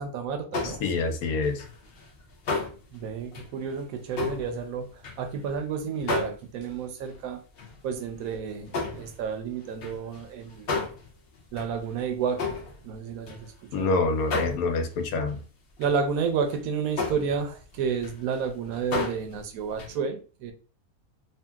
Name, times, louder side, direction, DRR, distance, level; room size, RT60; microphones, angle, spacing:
voice 1, 0.0-0.8 2.9-7.4 7.8-10.7 11.5-12.6 12.8-13.9 15.8-20.5, right 6 dB, 75° right, 1.0 m, -31 dB
sound 1, 0.5-1.1 1.4-5.6 6.0-7.2 7.6-7.8 8.1-13.8 14.2-15.0 15.3-15.4 15.8-16.0 16.5-16.6 17.0-19.4 19.7-20.0, left 4 dB, 60° left, 0.6 m, -34 dB
voice 2, 0.6-1.6 13.7-15.4, left 3 dB, 75° left, 1.1 m, -26 dB
2.8 x 2.8 x 2.2 m
omnidirectional pair, 1.5 m